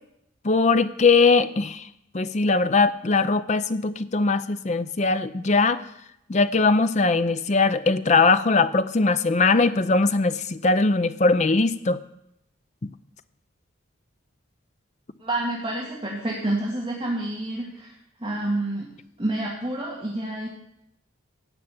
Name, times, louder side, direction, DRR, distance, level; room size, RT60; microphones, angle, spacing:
voice 1, 0.4-1.8 2.1-5.8 6.3-12.0, left 3 dB, 35° left, 12 dB, 0.5 m, -20 dB
voice 2, 15.2-17.9 18.2-18.9 19.2-20.5, right 1 dB, 25° right, -6 dB, 2.3 m, -28 dB
17.0 x 5.8 x 8.6 m, 0.82 s
head